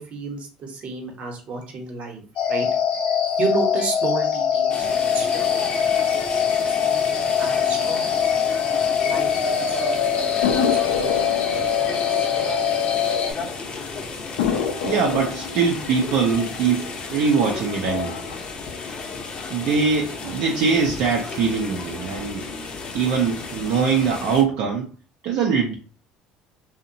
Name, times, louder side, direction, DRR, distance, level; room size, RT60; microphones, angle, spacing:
voice 1, 0.0-2.2 2.5-2.7 3.1-5.8 6.1-8.1 9.0-11.5 11.9-12.7 13.6-13.7, right 4 dB, 50° right, 0.8 m, -32 dB
sound 1, 2.4-13.3, left 7 dB, 70° left, 0.7 m, -22 dB
sound 2, 4.7-24.4, left 4 dB, 40° left, 0.6 m, -33 dB
sound 3, 10.4-13.5 13.8-13.9 14.4-17.3 17.7-18.3, left 6 dB, 85° left, 0.4 m, -29 dB
voice 2, 14.8-18.2 19.5-22.5 22.9-24.9 25.2-25.7, right 5 dB, 70° right, 0.4 m, -22 dB
2.7 x 2.1 x 2.6 m
supercardioid pair, 85°, 3 cm